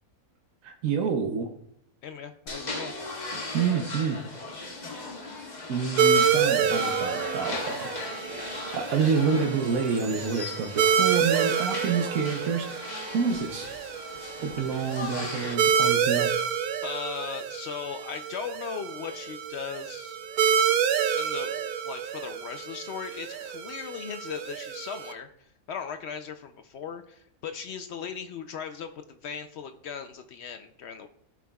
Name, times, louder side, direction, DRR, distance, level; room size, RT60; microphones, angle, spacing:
voice 1, 0.6-1.5 3.5-4.2 5.7-7.9 8.7-13.7 14.4-16.3, right 5 dB, 70° right, 3 dB, 1.1 m, -28 dB
voice 2, 2.0-2.9 16.8-20.2 21.1-31.1, left 7 dB, 65° left, 7 dB, 0.6 m, -38 dB
sound 1, 2.5-15.5, left 2 dB, 35° left, 1.0 m, -37 dB
sound 2, 6.0-25.1, right 8 dB, 90° right, 1.1 m, -28 dB
14.0 x 4.8 x 2.3 m, 0.71 s
omnidirectional pair, 1.5 m